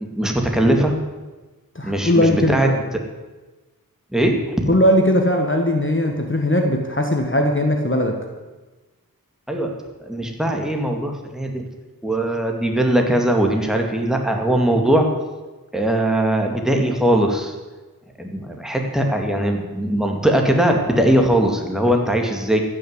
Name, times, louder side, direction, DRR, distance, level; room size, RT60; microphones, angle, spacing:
voice 1, 0.2-0.9 1.8-2.7 4.1-4.6 9.5-9.7 10.0-11.6 12.0-15.1 15.7-17.5 18.2-22.6, right 1 dB, ahead, 2 dB, 2.2 m, -20 dB
voice 2, 1.7-2.8 4.7-8.2, left 1 dB, 35° left, 3 dB, 1.6 m, -19 dB
15.0 x 6.4 x 8.1 m, 1.2 s
wide cardioid pair, 40°, 36 cm